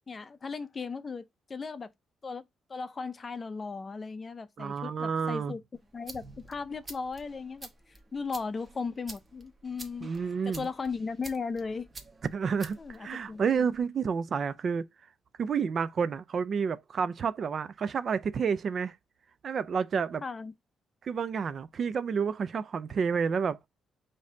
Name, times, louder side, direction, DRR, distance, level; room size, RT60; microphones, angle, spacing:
voice 1, 0.1-1.2 1.5-1.9 2.2-2.4 2.7-5.6 5.9-7.7 8.1-10.1 10.5-11.9 12.8-13.7 20.2-20.5, left 4 dB, 25° left, 0.5 m, -36 dB
voice 2, 4.6-5.5 10.0-10.7 12.3-14.9 15.4-19.0 19.4-20.2 21.0-23.6, right 6 dB, 45° right, 0.4 m, -30 dB
sound 1, 5.7-13.8, right 2 dB, 25° right, 1.0 m, -50 dB
5.3 x 2.7 x 3.7 m
cardioid pair, 135°, 0 cm